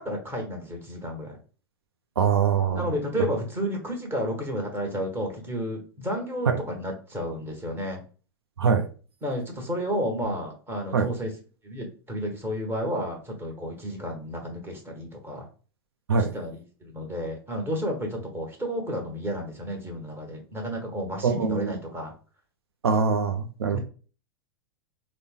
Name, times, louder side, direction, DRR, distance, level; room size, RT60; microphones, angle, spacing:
voice 1, 0.0-1.4 2.7-8.0 9.2-11.3 11.6-15.5 16.2-22.1 23.7-23.8, equal, 15° right, 1.2 m, -32 dB
voice 2, 2.2-2.9 8.6-8.9 10.9-11.1 16.1-16.3 21.2-21.7 22.8-23.8, right 6 dB, 85° right, 0.4 m, -23 dB
3.8 x 2.1 x 3.5 m
hypercardioid pair, 100°, 13 cm